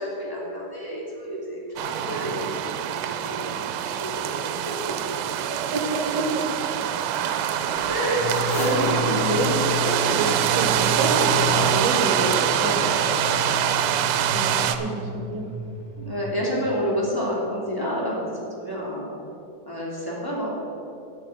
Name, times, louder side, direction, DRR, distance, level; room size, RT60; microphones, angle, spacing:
voice 1, 0.0-4.8 7.8-9.5 10.0-10.2 12.5-12.8 16.0-19.1 19.7-20.6, equal, 5° left, -5 dB, 2.4 m, -29 dB
sound 1, 1.8-14.8, right 10 dB, 80° right, 2.1 m, -24 dB
voice 2, 5.7-6.5 6.8-6.9 8.6-8.7 9.3-12.6 14.3-14.5 14.8-15.4, right 3 dB, 60° right, 1 dB, 2.2 m, -28 dB
sound 2, 7.3-13.9, left 7 dB, 75° left, 1.8 m, -39 dB
sound 3, 8.1-16.8, left 3 dB, 50° left, 2.2 m, -33 dB
10.0 x 6.5 x 9.0 m, 2.7 s
omnidirectional pair, 3.5 m